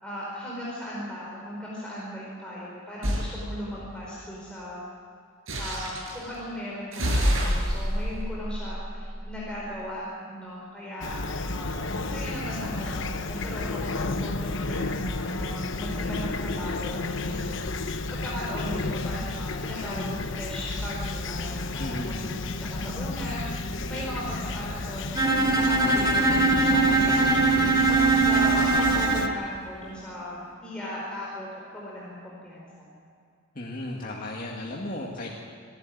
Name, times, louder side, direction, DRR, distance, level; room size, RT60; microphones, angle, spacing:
voice 1, 0.0-4.8 5.6-17.4 18.1-27.4 27.9-32.9, equal, 5° left, -6 dB, 4.6 m, -37 dB
sound 1, 3.0-3.3 5.5-6.2 6.9-9.5, equal, 85° right, 5.9 m, -27 dB
Fowl / Chirp tweet, 11.0-29.3, left 2 dB, 65° left, 1.0 m, -32 dB
voice 2, 21.8-22.3 33.6-35.4, left 1 dB, 45° left, -2 dB, 2.1 m, -35 dB
Bowed string instrument, 25.2-29.4, right 3 dB, 20° right, 2.4 m, -21 dB
26.0 x 12.0 x 9.8 m, 2.3 s
head